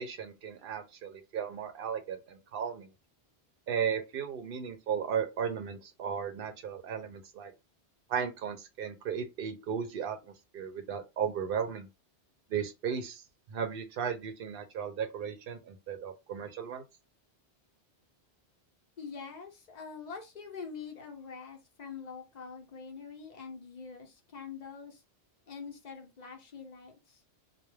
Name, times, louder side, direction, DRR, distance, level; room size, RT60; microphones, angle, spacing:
voice 1, 0.0-2.9 3.7-7.5 8.1-11.9 12.5-13.2 13.5-16.8, right 7 dB, 65° right, 0.7 m, -35 dB
voice 2, 19.0-25.0 25.5-27.2, left 5 dB, 45° left, 0.7 m, -45 dB
2.2 x 2.0 x 3.2 m
omnidirectional pair, 1.1 m